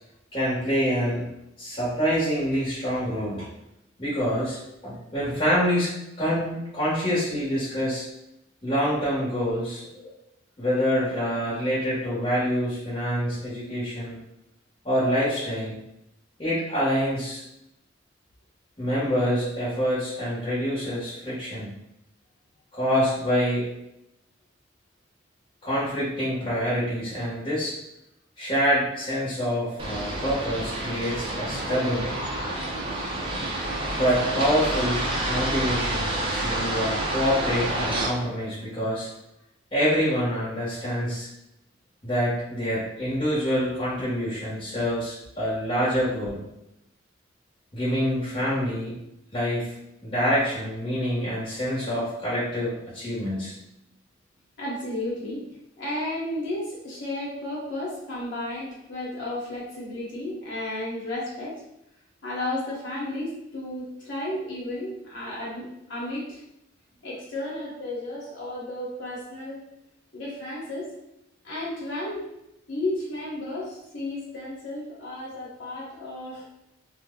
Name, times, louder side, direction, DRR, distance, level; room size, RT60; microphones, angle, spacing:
voice 1, 0.3-1.3 1.6-3.5 4.0-4.6 4.8-5.9 6.2-8.0 8.6-10.1 10.6-14.2 14.8-15.8 16.4-17.4 18.8-21.7 22.7-23.7 25.6-27.7 28.4-32.1 34.0-35.0 35.3-39.1 39.7-41.3 42.0-46.4 47.7-49.0 49.3-49.7 50.0-53.5, equal, 25° left, -9 dB, 1.0 m, -26 dB
sound 1, 29.8-38.1, right 1 dB, 25° right, 0.5 m, -28 dB
voice 2, 54.6-55.4 55.8-61.6 62.2-66.4 67.0-69.6 70.1-70.9 71.4-72.3 72.7-76.5, left 1 dB, 65° left, -6 dB, 1.0 m, -33 dB
2.7 x 2.1 x 3.6 m, 0.82 s
head